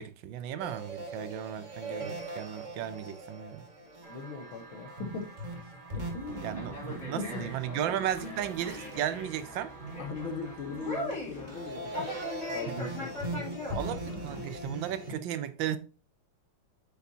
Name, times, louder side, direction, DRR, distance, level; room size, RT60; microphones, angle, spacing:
voice 1, 0.0-3.7 6.4-9.7 12.7-12.8 13.7-15.8, right 10 dB, 75° right, 1.3 m, -35 dB
sound 1, 0.6-8.3 8.7-9.3 9.7-15.1, right 1 dB, 25° right, 1.5 m, -40 dB
sound 2, 4.0-11.1, right 3 dB, 55° right, 2.1 m, -52 dB
voice 2, 4.1-5.3 5.9-6.8 7.2-7.4 7.8-7.9 8.2-8.4 10.0-12.1 12.5-14.0, left 4 dB, 80° left, 2.0 m, -40 dB
Conversation, 6.3-14.6, left 1 dB, 40° left, 4.2 m, -41 dB
7.9 x 6.5 x 2.7 m
omnidirectional pair, 2.2 m